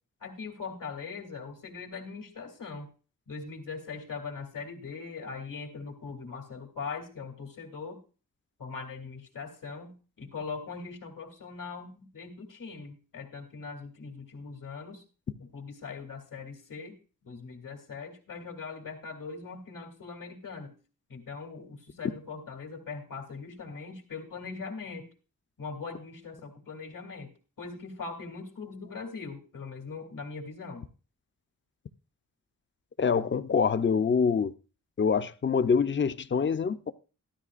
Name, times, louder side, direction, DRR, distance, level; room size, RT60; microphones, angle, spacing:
voice 1, 0.2-2.9 3.3-8.0 8.6-15.0 15.4-20.7 21.1-25.1 25.6-27.3 27.6-30.9, left 4 dB, 75° left, 2.8 m, -41 dB
voice 2, 33.0-34.5 35.0-36.9, left 6 dB, 35° left, 0.6 m, -25 dB
14.0 x 12.5 x 2.5 m
wide cardioid pair, 125°, 33 cm